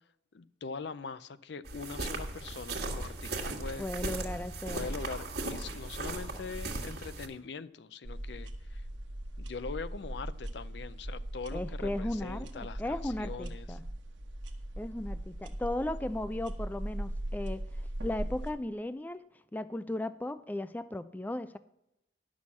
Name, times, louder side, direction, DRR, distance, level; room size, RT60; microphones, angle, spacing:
voice 1, 0.3-3.9 4.7-8.8 9.4-13.7, left 4 dB, 70° left, 0.5 m, -42 dB
sound 1, 1.7-7.3, right 2 dB, 60° right, 1.6 m, -37 dB
voice 2, 3.8-4.9 11.5-13.8 14.8-19.2 19.5-21.6, left 1 dB, 10° left, 0.3 m, -36 dB
sound 2, 8.0-18.5, right 1 dB, 85° right, 1.2 m, -39 dB
11.0 x 6.2 x 7.2 m
head